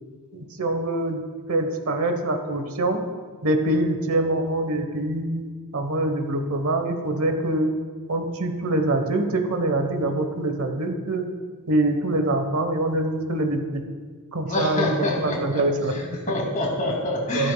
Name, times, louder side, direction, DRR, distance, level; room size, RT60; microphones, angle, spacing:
voice 1, 0.3-3.0 3.4-7.8 8.1-11.3 11.7-13.8 14.3-16.0 17.3-17.5, right 1 dB, 65° right, 6 dB, 1.1 m, -24 dB
voice 2, 14.5-17.5, left 1 dB, 35° left, -2 dB, 2.4 m, -27 dB
14.0 x 12.5 x 2.3 m, 1.5 s
head